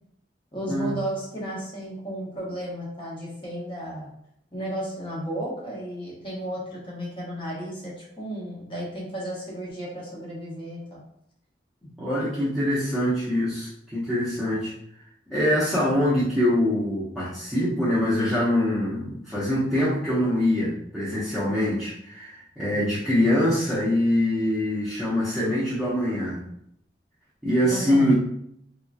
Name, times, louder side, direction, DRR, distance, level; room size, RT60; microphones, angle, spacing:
voice 1, 0.5-4.1 4.5-11.0 11.8-11.9 27.7-28.1, equal, 30° left, -5 dB, 1.2 m, -33 dB
voice 2, 12.0-14.7 15.3-26.4 27.4-28.1, left 1 dB, ahead, -13 dB, 0.9 m, -24 dB
3.6 x 3.0 x 2.4 m, 0.71 s
head